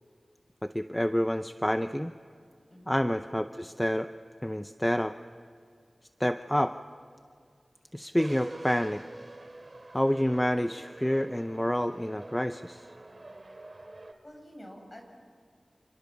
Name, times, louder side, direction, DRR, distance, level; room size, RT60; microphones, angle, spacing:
voice 1, 0.6-2.1 2.9-4.1 4.4-5.1 6.2-6.8 7.9-9.0 9.9-12.9, equal, 10° left, 9 dB, 0.7 m, -28 dB
voice 2, 2.7-3.0 14.2-15.0, equal, 35° left, 2 dB, 7.1 m, -48 dB
sound 1, 8.2-14.1, right 2 dB, 45° right, 2.7 m, -47 dB
30.0 x 28.0 x 7.0 m, 2.2 s
wide cardioid pair, 60°, 0 cm